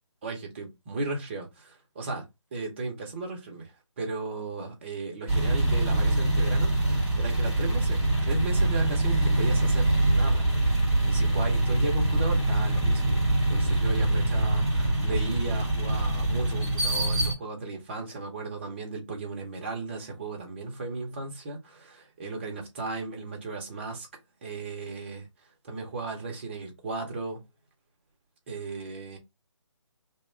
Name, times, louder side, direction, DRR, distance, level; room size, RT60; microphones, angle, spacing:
voice 1, 0.2-3.7 4.0-24.1 24.4-25.3 25.7-27.4 28.5-29.2, right 3 dB, 20° right, 0.8 m, -35 dB
sound 1, 5.3-17.3, right 2 dB, 5° left, 1.2 m, -24 dB
3.0 x 2.3 x 4.2 m
figure-of-eight pair, 160°, 17 cm